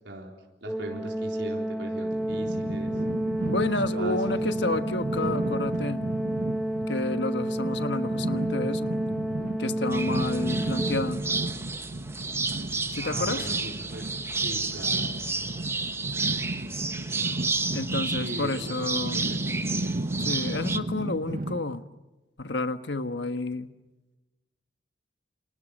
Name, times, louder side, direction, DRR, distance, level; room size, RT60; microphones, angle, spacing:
voice 1, 0.6-3.0 3.9-4.5 13.0-15.2 18.1-19.6, right 1 dB, 85° right, 0 dB, 4.0 m, -39 dB
Organ, 0.7-11.5, right 1 dB, ahead, 0.9 m, -30 dB
sound 1, 2.1-21.6, right 1 dB, 55° right, 1.1 m, -34 dB
voice 2, 3.4-6.0 6.9-9.0 9.6-11.2 12.9-13.5 17.7-19.3 20.2-21.9 22.4-23.7, left 2 dB, 75° left, 9 dB, 1.4 m, -30 dB
sound 2, 9.9-20.8, right 3 dB, 15° right, 1.2 m, -31 dB
29.5 x 27.0 x 6.6 m, 1.1 s
head